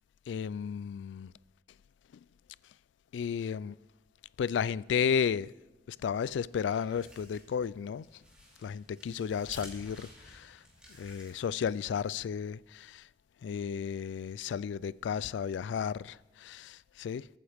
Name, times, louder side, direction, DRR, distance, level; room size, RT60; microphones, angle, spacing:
voice 1, 0.3-1.3 3.1-3.8 4.4-5.6 5.9-8.1 8.6-10.6 10.9-13.1 13.4-17.3, left 7 dB, 90° left, 0.3 m, -33 dB
sound 1, 6.4-11.9, equal, 5° right, 3.2 m, -53 dB
22.0 x 9.4 x 3.5 m
head